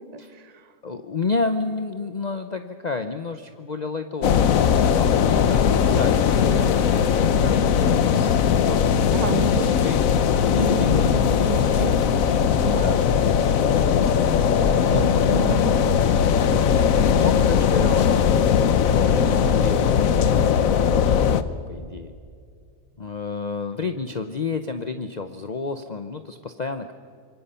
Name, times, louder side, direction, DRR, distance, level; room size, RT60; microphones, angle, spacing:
voice 1, 0.0-0.7 9.1-9.9 10.5-11.9 12.6-13.0 14.6-16.1, right 5 dB, 30° right, 9 dB, 1.1 m, -31 dB
voice 2, 0.8-7.0 7.4-8.4 8.7-10.0 10.5-12.0 12.7-13.0 14.6-15.3 16.7-18.2 19.0-21.3 21.7-22.1 23.0-26.9, left 4 dB, 35° left, 8 dB, 0.8 m, -31 dB
sound 1, 4.2-21.4, left 7 dB, 70° left, 1.2 m, -19 dB
26.0 x 23.0 x 5.7 m, 2.3 s
omnidirectional pair, 1.5 m